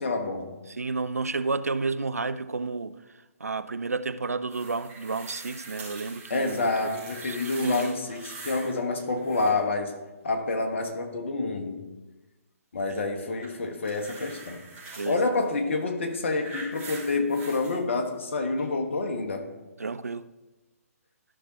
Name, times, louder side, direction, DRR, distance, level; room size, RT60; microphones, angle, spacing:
voice 1, 0.0-0.6 6.3-10.0 10.2-11.8 12.7-14.6 15.0-19.5, left 3 dB, 50° left, 1.2 m, -28 dB
voice 2, 0.7-3.0 3.4-7.4 7.6-8.0 12.9-13.0 15.0-15.2 19.8-20.3, right 4 dB, 75° right, 0.4 m, -31 dB
sound 1, 4.5-8.7 9.0-9.7 13.4-15.2 16.0-17.7 18.6-18.7, right 3 dB, 20° right, 3.0 m, -43 dB
13.5 x 5.8 x 2.9 m
figure-of-eight pair, 130°, 8 cm